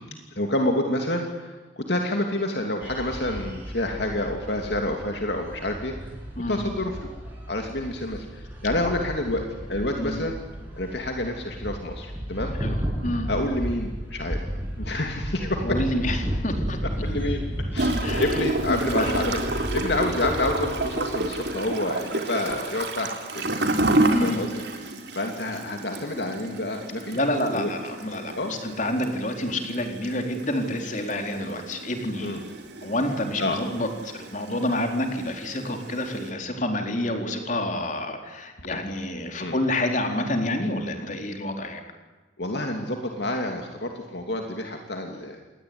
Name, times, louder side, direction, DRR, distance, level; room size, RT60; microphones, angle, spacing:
voice 1, 0.3-6.1 6.5-7.0 7.5-10.4 10.7-12.6 13.3-14.4 14.8-15.8 17.0-17.4 17.7-23.5 24.2-27.2 27.5-27.7 28.3-28.5 32.2-32.4 33.4-33.6 38.7-38.8 39.4-39.6 42.4-45.4, left 1 dB, 60° left, 3 dB, 2.9 m, -28 dB
sound 1, 2.8-21.5, equal, 10° right, 7.8 m, -33 dB
voice 2, 6.4-6.7 10.0-10.3 12.6-13.3 15.6-16.8 18.0-18.3 18.7-19.1 24.1-24.5 27.1-32.3 32.8-41.8, left 1 dB, 40° left, 4 dB, 4.2 m, -28 dB
Gurgling / Toilet flush, 17.8-36.3, right 2 dB, 60° right, 3.8 m, -30 dB
28.0 x 21.5 x 9.7 m, 1.2 s
head